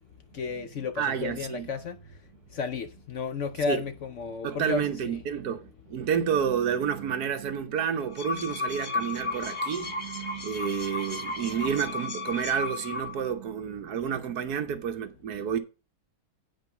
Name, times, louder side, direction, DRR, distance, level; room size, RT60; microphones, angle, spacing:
voice 1, 0.3-2.0 2.5-5.2, left 5 dB, 60° left, 0.9 m, -33 dB
voice 2, 1.0-1.7 3.6-3.8 4.4-15.6, right 8 dB, 70° right, 1.4 m, -30 dB
sound 1, 7.9-13.3, left 3 dB, 30° left, 1.3 m, -34 dB
9.1 x 5.1 x 5.8 m
omnidirectional pair, 1.8 m